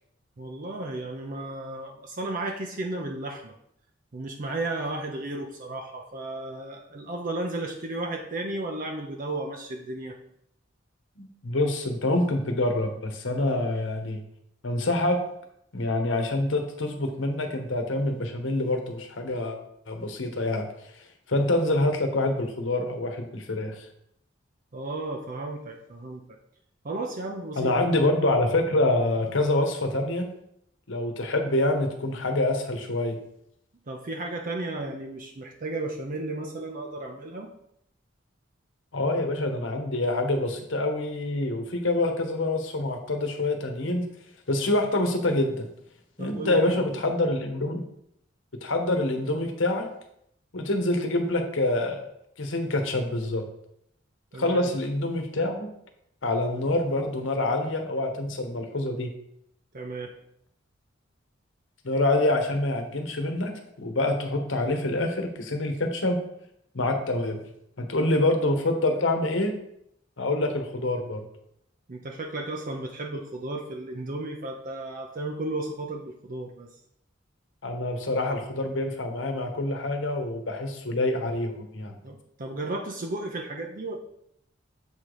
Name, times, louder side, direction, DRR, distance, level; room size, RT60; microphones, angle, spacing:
voice 1, 0.4-3.6 4.1-10.2 24.7-26.2 26.8-27.9 33.9-37.5 46.2-47.0 54.3-54.6 59.7-60.1 71.9-76.7 82.0-84.0, right 2 dB, 45° right, 2 dB, 0.6 m, -34 dB
voice 2, 11.2-14.2 14.6-15.2 15.7-19.6 19.9-20.7 21.3-23.9 27.6-30.3 30.9-33.2 38.9-44.0 44.5-45.7 46.2-47.8 48.6-49.9 50.5-52.1 52.4-53.4 54.4-55.7 56.2-59.1 61.8-66.2 66.7-67.4 67.8-69.5 70.2-71.2 77.6-81.9, left 2 dB, 70° left, 5 dB, 1.1 m, -26 dB
7.3 x 3.9 x 4.9 m, 0.75 s
head